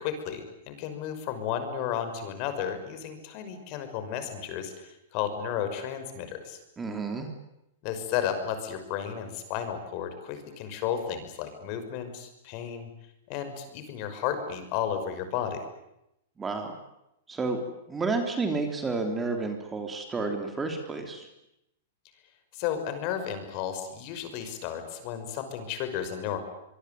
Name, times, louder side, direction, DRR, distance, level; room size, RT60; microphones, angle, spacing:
voice 1, 0.0-6.6 7.8-12.9 13.3-15.6 22.5-26.4, left 9 dB, 40° left, 8 dB, 5.9 m, -33 dB
voice 2, 6.8-7.3 16.4-16.7 17.3-17.6 17.9-21.3, right 3 dB, 15° right, 5 dB, 3.4 m, -30 dB
25.5 x 22.5 x 9.4 m, 0.84 s
hypercardioid pair, 145°, 0 cm